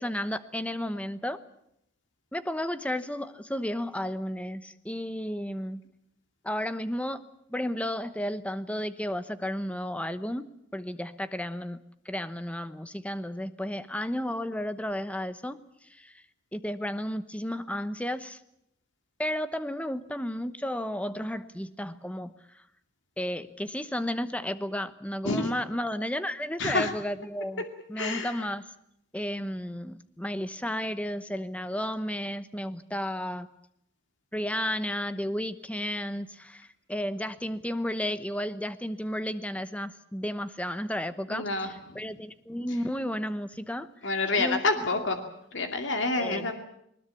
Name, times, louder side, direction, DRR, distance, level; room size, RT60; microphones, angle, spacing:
voice 1, 0.0-1.4 2.3-5.8 6.4-7.2 7.5-11.8 12.0-15.6 15.9-16.1 16.5-18.4 19.2-22.3 23.2-27.6 27.9-28.6 29.1-33.5 34.3-43.9 44.4-44.6 46.2-46.5, left 1 dB, 5° left, 12 dB, 1.0 m, -33 dB
voice 2, 26.6-26.9 28.0-28.4 41.3-41.7 44.0-45.2 45.5-46.5, left 3 dB, 65° left, 6 dB, 2.4 m, -28 dB
21.0 x 20.5 x 8.5 m, 0.76 s
head